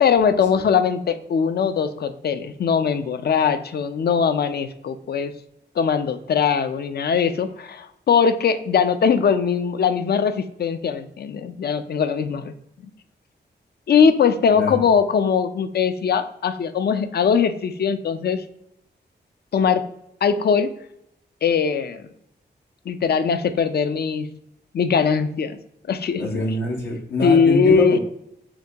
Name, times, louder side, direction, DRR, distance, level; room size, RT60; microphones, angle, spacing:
voice 1, 0.0-5.3 5.8-12.5 13.9-18.4 19.5-19.8 20.2-20.7 21.4-22.0 22.9-24.3 24.7-25.6 25.9-26.4 27.2-28.0, left 6 dB, 60° left, 10 dB, 0.4 m, -20 dB
voice 2, 26.2-28.0, left 2 dB, 80° left, -4 dB, 0.8 m, -24 dB
5.8 x 2.3 x 2.8 m, 0.78 s
wide cardioid pair, 90°, 19 cm